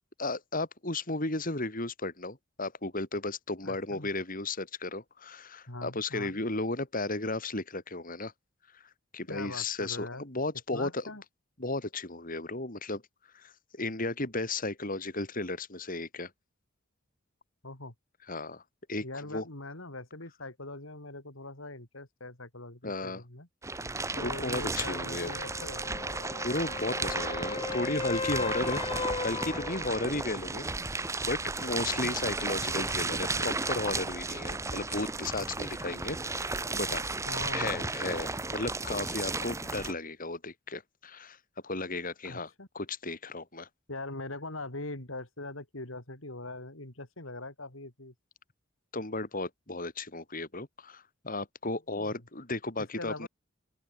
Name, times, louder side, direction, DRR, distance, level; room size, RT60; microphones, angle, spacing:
voice 1, 0.2-8.3 8.7-11.1 11.6-13.0 13.3-16.3 18.3-18.6 18.9-19.0 19.3-19.4 22.8-23.2 24.2-25.3 26.4-28.8 29.2-37.1 37.5-41.4 41.6-43.7 48.9-53.3, left 2 dB, 45° left, 4.7 m, -34 dB
voice 2, 3.6-4.1 5.7-6.4 9.3-10.3 10.7-11.2 17.6-17.9 19.0-23.5 24.1-26.0 29.9-30.1 31.7-32.1 37.2-37.9 42.2-42.7 43.9-48.1 51.9-52.2 53.0-53.3, left 2 dB, 75° left, 4.4 m, -42 dB
sound 1, 23.6-39.9, right 3 dB, 15° right, 1.2 m, -34 dB
sound 2, 24.8-30.4 34.5-34.6, left 3 dB, 30° left, 1.1 m, -37 dB
open air
head